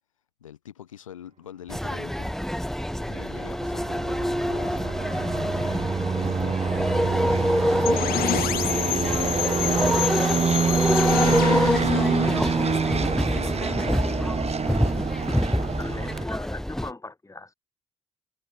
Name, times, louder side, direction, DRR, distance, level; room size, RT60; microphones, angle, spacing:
voice 1, 0.4-2.3 3.0-8.1 8.7-13.0 13.3-14.4, left 10 dB, 90° left, 4.8 m, -45 dB
sound 1, 1.7-16.9, equal, ahead, 1.1 m, -26 dB
sound 2, 2.9-16.2, right 6 dB, 40° right, 4.0 m, -27 dB
sound 3, 7.9-13.7, left 14 dB, 65° left, 3.8 m, -29 dB
voice 2, 15.3-17.5, left 2 dB, 20° left, 6.0 m, -40 dB
hypercardioid pair, 50°, 16 cm